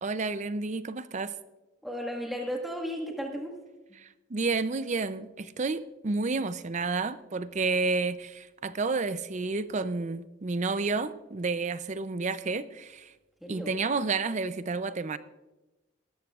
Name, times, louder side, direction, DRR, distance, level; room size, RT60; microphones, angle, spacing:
voice 1, 0.0-1.3 4.0-13.1 13.5-15.2, right 3 dB, 35° right, 13 dB, 0.5 m, -30 dB
voice 2, 1.8-3.5 13.4-13.7, equal, ahead, 0 dB, 1.6 m, -34 dB
19.5 x 13.5 x 2.4 m, 1.1 s
head